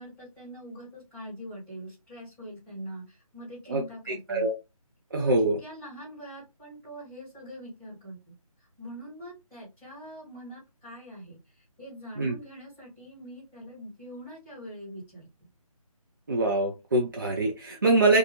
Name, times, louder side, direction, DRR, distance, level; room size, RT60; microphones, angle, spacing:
voice 1, 0.0-4.5 5.2-8.3 8.6-15.3, equal, 10° left, -9 dB, 1.5 m, -43 dB
voice 2, 3.7-4.5 5.1-5.6 12.2-12.3 16.3-18.2, right 2 dB, 35° right, 0 dB, 0.5 m, -24 dB
2.7 x 2.3 x 2.9 m, 0.24 s
figure-of-eight pair, 160°, 19 cm